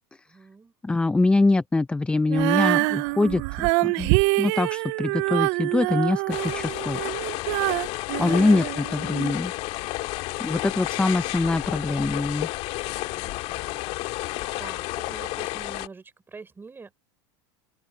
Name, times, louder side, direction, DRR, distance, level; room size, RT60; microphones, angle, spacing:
voice 1, 0.3-0.7 8.2-8.6 13.1-16.9, right 4 dB, 15° right, 4.7 m, -46 dB
voice 2, 0.8-7.0 8.2-9.5 10.4-12.5, left 2 dB, 10° left, 0.6 m, -24 dB
Female singing, 2.3-9.3, right 27 dB, 60° right, 0.4 m, -25 dB
sound 1, 6.3-15.9, left 19 dB, 55° left, 2.2 m, -31 dB
open air
supercardioid pair, 120°, 13 cm